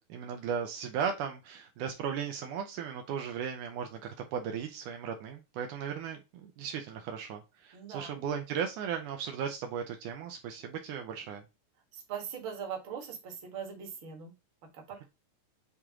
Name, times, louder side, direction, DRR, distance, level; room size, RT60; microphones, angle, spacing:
voice 1, 0.0-11.4, right 7 dB, 75° right, 4 dB, 2.3 m, -36 dB
voice 2, 7.7-8.1 11.9-14.3 14.6-15.0, right 7 dB, 45° right, 0 dB, 2.1 m, -41 dB
8.3 x 3.1 x 3.6 m, 0.24 s
omnidirectional pair, 3.7 m